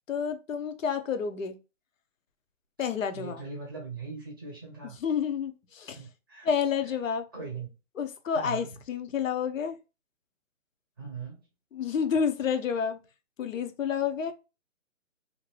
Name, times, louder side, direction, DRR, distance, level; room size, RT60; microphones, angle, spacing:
voice 1, 0.1-1.6 2.8-3.4 4.8-6.0 6.4-7.3 8.0-9.8 11.7-13.0 13.4-14.3, left 7 dB, 80° left, 0.7 m, -29 dB
voice 2, 3.1-5.0 5.9-6.5 7.3-7.7 8.3-8.7 11.0-11.4, right 5 dB, 15° right, 0.7 m, -40 dB
2.7 x 2.5 x 3.0 m
hypercardioid pair, 165°, 39 cm